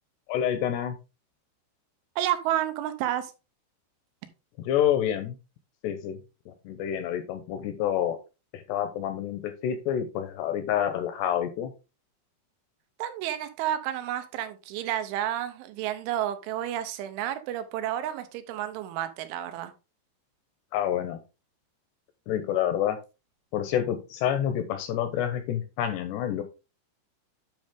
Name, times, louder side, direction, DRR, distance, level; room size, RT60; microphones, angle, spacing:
voice 1, 0.3-1.0 4.6-5.4 5.8-6.2 6.5-8.2 8.5-11.7 20.7-21.2 22.3-23.0 23.5-26.4, left 10 dB, 80° left, 9 dB, 2.5 m, -28 dB
voice 2, 2.2-3.3 13.0-19.7, right 12 dB, 90° right, 10 dB, 3.3 m, -30 dB
9.1 x 5.2 x 3.5 m, 0.30 s
omnidirectional pair, 5.4 m